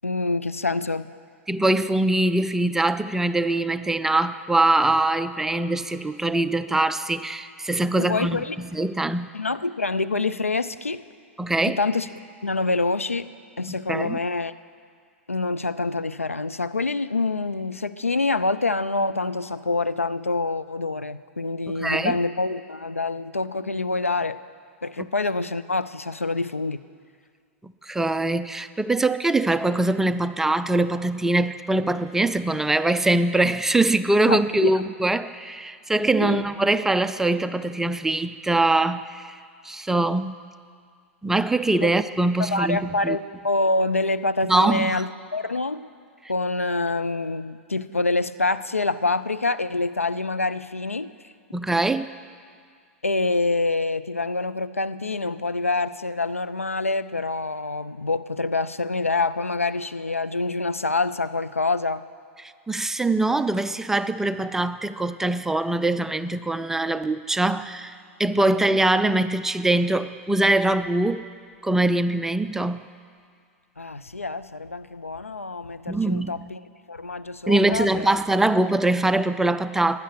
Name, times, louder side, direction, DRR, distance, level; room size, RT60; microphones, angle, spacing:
voice 1, 0.0-1.1 8.0-8.6 9.3-11.0 11.6-12.1 12.4-14.5 15.3-24.4 24.8-26.8 34.3-34.7 36.2-36.5 41.8-41.9 42.4-45.9 46.3-51.3 53.0-62.0 73.8-76.6 76.9-78.2, left 3 dB, 85° left, 13 dB, 0.4 m, -26 dB
voice 2, 1.5-9.3 11.4-11.8 13.9-14.2 21.8-22.2 27.6-39.4 39.6-40.3 41.2-43.2 44.5-45.0 51.5-52.1 62.7-71.2 71.6-72.8 75.9-76.3 77.5-80.0, right 2 dB, 5° right, 12 dB, 0.4 m, -23 dB
15.5 x 10.0 x 6.2 m, 2.1 s
figure-of-eight pair, 95°, 7 cm